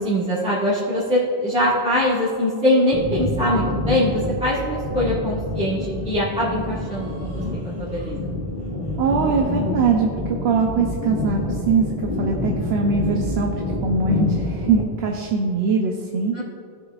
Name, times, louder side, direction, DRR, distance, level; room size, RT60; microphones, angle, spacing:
voice 1, 0.0-7.4 7.8-8.3 16.3-16.4, equal, 5° right, -10 dB, 1.8 m, -22 dB
sound 1, 2.9-14.8, left 1 dB, 30° right, 2.1 m, -27 dB
voice 2, 9.0-10.1 10.4-11.4 11.7-11.9 12.2-13.5 13.8-16.4, right 5 dB, 85° right, 1 dB, 1.0 m, -21 dB
16.5 x 7.0 x 2.4 m, 2.4 s
omnidirectional pair, 1.1 m